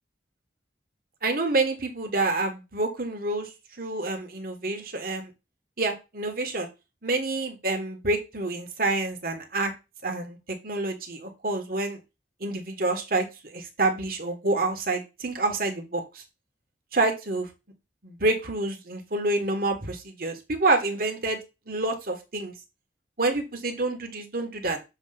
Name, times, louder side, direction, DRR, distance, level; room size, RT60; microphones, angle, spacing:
voice 1, 1.2-5.3 5.8-6.7 7.0-9.7 10.0-10.4 10.6-12.0 12.4-16.2 16.9-17.5 18.0-21.4 21.7-22.5 23.2-24.8, right 2 dB, 55° right, 5 dB, 1.6 m, -28 dB
7.2 x 3.1 x 5.8 m, 0.26 s
head